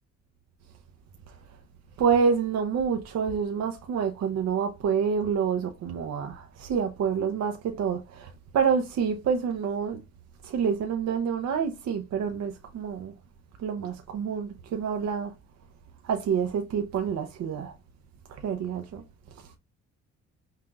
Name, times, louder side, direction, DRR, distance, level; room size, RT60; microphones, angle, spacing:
voice 1, 2.0-10.0 10.4-13.1 13.6-15.3 16.0-17.7 18.4-19.0, right 6 dB, 60° right, 0.7 m, -27 dB
5.7 x 2.5 x 2.3 m
cardioid pair, 90°, 30 cm